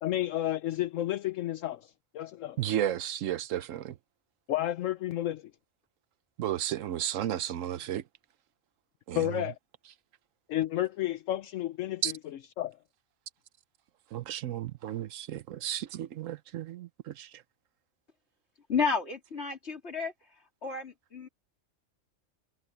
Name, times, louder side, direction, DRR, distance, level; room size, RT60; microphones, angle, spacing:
voice 1, 0.0-2.6 4.5-5.4 9.1-9.5 10.5-12.0 12.6-12.8, left 13 dB, 75° left, 1.0 m, -31 dB
voice 2, 2.6-4.0 6.4-8.0 9.1-9.5 12.0-12.1 14.1-17.4, right 11 dB, 75° right, 1.0 m, -33 dB
voice 3, 18.7-20.1 20.6-21.3, left 5 dB, 55° left, 3.3 m, -31 dB
omnidirectional pair, 1.4 m